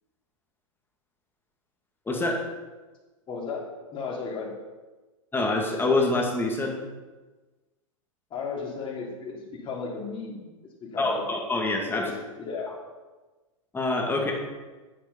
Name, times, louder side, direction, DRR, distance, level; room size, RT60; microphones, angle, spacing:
voice 1, 2.1-2.4 5.3-6.8 11.0-12.1 13.7-14.3, left 2 dB, 10° left, 0 dB, 2.2 m, -25 dB
voice 2, 3.3-3.7 3.9-4.5 8.3-10.5 10.8-11.2 11.9-12.7 14.1-14.3, left 5 dB, 30° left, -3 dB, 3.0 m, -35 dB
8.8 x 8.5 x 5.4 m, 1.2 s
hypercardioid pair, 100°, 18 cm